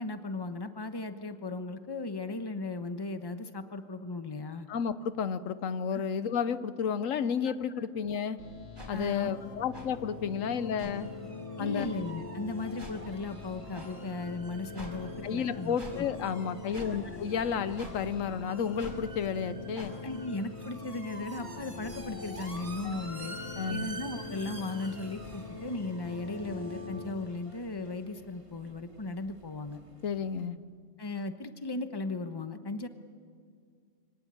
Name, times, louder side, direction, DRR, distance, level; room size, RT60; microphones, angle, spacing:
voice 1, 0.0-4.7 5.9-6.0 7.4-7.9 8.9-9.3 11.6-16.1 17.0-17.2 20.0-23.4 23.7-29.8 31.0-32.9, left 3 dB, 20° left, 8 dB, 1.0 m, -37 dB
voice 2, 4.7-8.4 8.9-11.1 11.6-11.9 15.2-20.0 22.8-23.0 23.6-23.9 30.0-30.6, left 7 dB, 90° left, 13 dB, 1.2 m, -32 dB
sound 1, 8.4-27.0, left 4 dB, 75° left, 3.8 m, -44 dB
sound 2, 8.7-8.9 9.7-9.9 10.8-10.9 11.7-11.9 12.8-12.9 13.7-13.9 14.7-14.9 15.7-16.0 16.7-16.9 17.7-17.9 18.8-19.0 19.7-19.9, equal, 45° right, 5.2 m, -44 dB
sound 3, 11.0-30.5, right 2 dB, 25° right, 2.0 m, -49 dB
25.0 x 18.0 x 8.9 m, 2.1 s
omnidirectional pair, 1.3 m